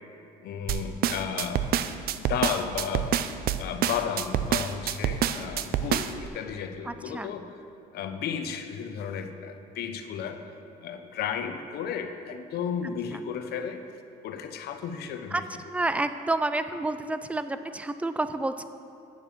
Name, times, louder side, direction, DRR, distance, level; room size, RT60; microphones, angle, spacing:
voice 1, 0.4-1.7 2.1-3.1 3.6-7.5 7.9-10.4 10.8-13.8 14.2-15.4, left 7 dB, 70° left, 8 dB, 0.8 m, -33 dB
sound 1, 0.7-6.3, right 10 dB, 65° right, 0.5 m, -27 dB
voice 2, 6.9-7.3 15.3-15.4 15.7-18.6, right 2 dB, 10° right, 11 dB, 0.4 m, -29 dB
9.2 x 7.2 x 7.1 m, 2.6 s
cardioid pair, 110°, 17 cm